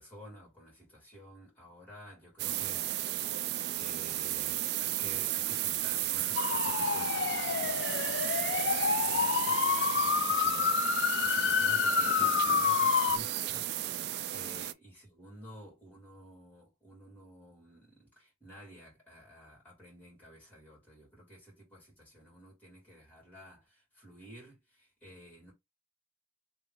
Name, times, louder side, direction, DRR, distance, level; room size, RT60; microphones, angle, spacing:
voice 1, 0.0-3.5 3.8-25.5, equal, 10° left, 2.3 m, -52 dB
sound 1, 2.4-14.7, right 13 dB, 60° right, 0.3 m, -34 dB
sound 2, 6.4-13.2, left 6 dB, 70° left, 0.4 m, -28 dB
3.1 x 3.0 x 3.7 m
head